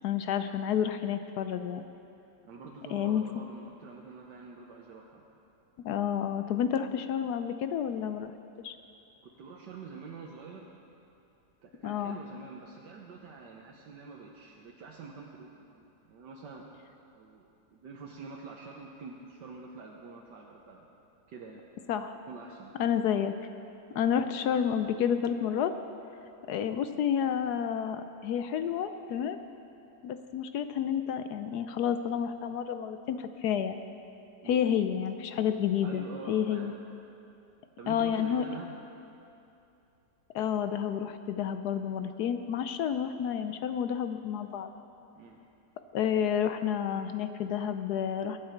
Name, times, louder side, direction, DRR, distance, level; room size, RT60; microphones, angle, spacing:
voice 1, 0.0-1.8 2.9-3.2 5.8-8.3 8.6-8.7 11.8-12.2 21.9-22.1 22.8-23.3 23.9-25.7 26.5-29.4 30.0-33.8 34.5-36.7 37.9-38.4 40.3-44.7 45.9-48.4, left 8 dB, 70° left, 9 dB, 1.1 m, -30 dB
voice 2, 2.4-5.2 9.2-10.7 11.6-16.6 17.1-20.9 21.3-21.6 22.3-22.7 23.9-24.0 34.4-34.6 35.8-36.8 37.8-38.7 45.1-45.4, right 4 dB, 75° right, -1 dB, 1.6 m, -46 dB
22.5 x 9.5 x 4.5 m, 2.7 s
omnidirectional pair, 1.9 m